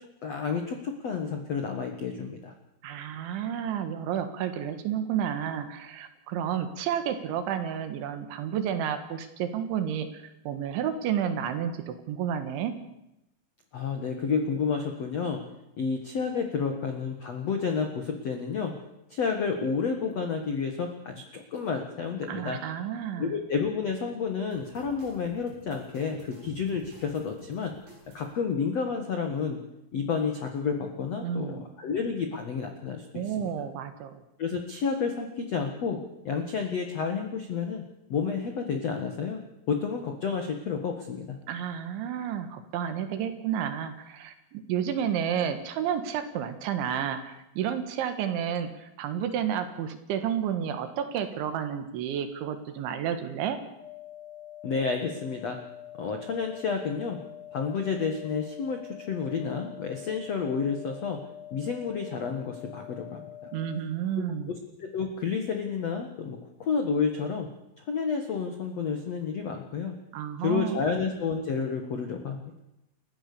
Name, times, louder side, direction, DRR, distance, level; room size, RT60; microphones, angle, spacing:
voice 1, 0.2-2.5 13.7-15.4 15.8-18.7 19.1-22.6 23.2-27.7 28.1-29.6 29.9-33.5 34.4-36.0 36.2-37.8 38.1-39.4 39.7-41.4 54.6-55.6 56.0-57.2 57.5-61.2 61.5-63.3 64.5-67.5 67.8-69.9 70.4-72.4, left 5 dB, 80° left, 4 dB, 1.4 m, -30 dB
voice 2, 2.8-12.7 22.3-23.4 31.2-31.7 33.2-34.2 41.5-53.6 63.5-64.5 70.1-70.9, right 9 dB, 70° right, 9 dB, 3.7 m, -31 dB
sound 1, 24.5-28.3, right 1 dB, 45° right, 8.2 m, -52 dB
sound 2, 53.8-63.8, left 11 dB, ahead, 6.9 m, -45 dB
30.0 x 15.0 x 6.9 m, 0.88 s
omnidirectional pair, 5.9 m